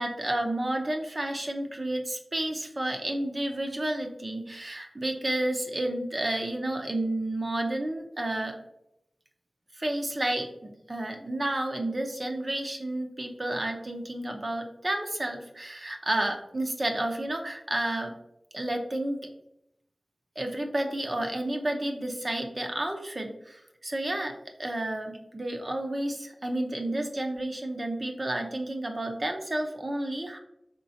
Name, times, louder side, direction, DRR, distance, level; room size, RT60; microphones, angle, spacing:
voice 1, 0.0-8.6 9.7-18.1 18.5-19.2 20.4-24.3 24.6-30.4, right 1 dB, 45° right, 3 dB, 0.7 m, -31 dB
4.5 x 3.6 x 2.8 m, 0.79 s
cardioid pair, 45°, 0 cm